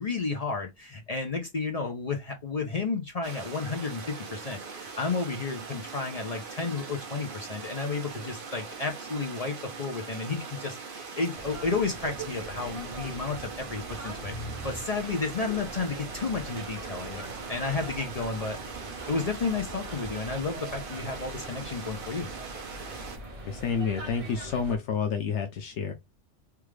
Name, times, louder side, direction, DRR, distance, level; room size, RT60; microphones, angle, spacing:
voice 1, 0.0-14.3 14.6-18.6 19.1-22.3, left 4 dB, 45° left, 0.6 m, -32 dB
sound 1, 3.2-23.2, right 5 dB, 50° right, 0.9 m, -41 dB
sound 2, 11.3-24.8, right 2 dB, 30° right, 1.0 m, -42 dB
sound 3, 14.1-16.0 18.8-20.8, equal, 60° left, 1.4 m, -45 dB
voice 2, 23.4-25.9, left 6 dB, 75° left, 0.9 m, -29 dB
3.4 x 2.4 x 3.1 m
omnidirectional pair, 1.2 m